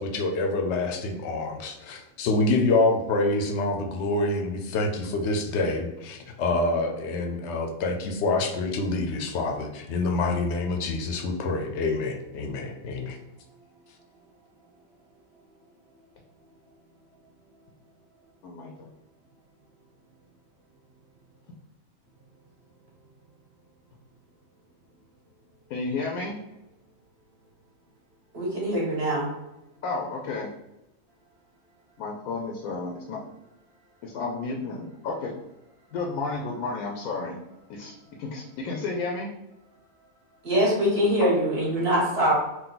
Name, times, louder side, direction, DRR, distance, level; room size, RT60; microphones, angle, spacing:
voice 1, 0.0-13.2, left 2 dB, 60° left, 4 dB, 0.8 m, -26 dB
voice 2, 18.4-18.9 25.7-26.4 29.8-30.5 32.0-33.2 34.0-35.3 35.9-37.4 37.7-37.9 38.2-39.3 41.2-41.4, left 3 dB, 85° left, 0 dB, 1.1 m, -32 dB
voice 3, 28.3-29.3 40.4-42.3, equal, 45° right, -4 dB, 1.6 m, -23 dB
3.9 x 2.3 x 3.8 m, 0.94 s
omnidirectional pair, 1.5 m